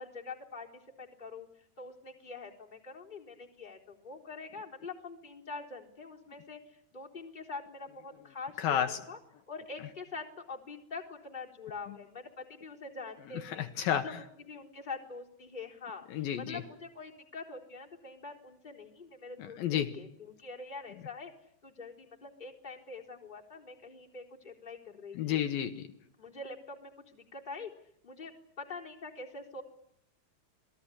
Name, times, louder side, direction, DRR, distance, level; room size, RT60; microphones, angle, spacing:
voice 1, 0.0-1.5 1.8-9.2 9.5-13.7 14.0-14.1 14.4-21.3 21.6-25.4 26.2-27.7 28.0-29.6, left 4 dB, 10° left, -1 dB, 3.7 m, -45 dB
voice 2, 8.6-9.0 13.5-14.1 16.1-16.6 19.4-19.9 25.2-25.9, left 10 dB, 70° left, 7 dB, 2.9 m, -31 dB
27.5 x 21.0 x 10.0 m, 0.70 s
omnidirectional pair, 4.4 m